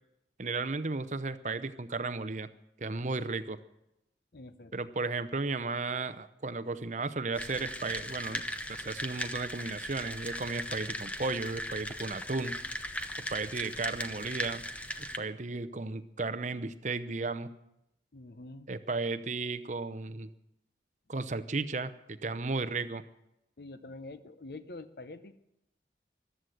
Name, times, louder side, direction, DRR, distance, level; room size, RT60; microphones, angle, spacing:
voice 1, 0.4-2.5 2.8-3.6 4.7-8.4 8.7-12.6 13.3-14.6 15.2-17.5 18.7-20.3 21.1-23.0, right 3 dB, 40° right, 13 dB, 0.7 m, -34 dB
voice 2, 4.3-4.7 13.6-13.7 18.1-18.7 23.6-25.3, left 2 dB, 60° left, 11 dB, 0.8 m, -46 dB
sound 1, 7.3-15.2, left 1 dB, 10° left, 0.7 m, -38 dB
14.0 x 13.0 x 7.9 m, 0.84 s
head